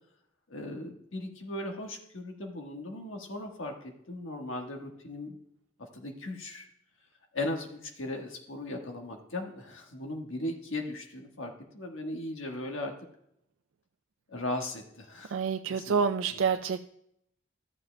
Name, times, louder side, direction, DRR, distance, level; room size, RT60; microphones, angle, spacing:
voice 1, 0.5-5.4 5.9-6.7 7.3-12.9 14.3-15.4 15.6-16.0 16.3-16.4, left 1 dB, 70° left, 3 dB, 1.4 m, -37 dB
voice 2, 15.3-16.8, right 6 dB, 65° right, 8 dB, 0.4 m, -28 dB
13.5 x 7.2 x 2.2 m, 0.75 s
head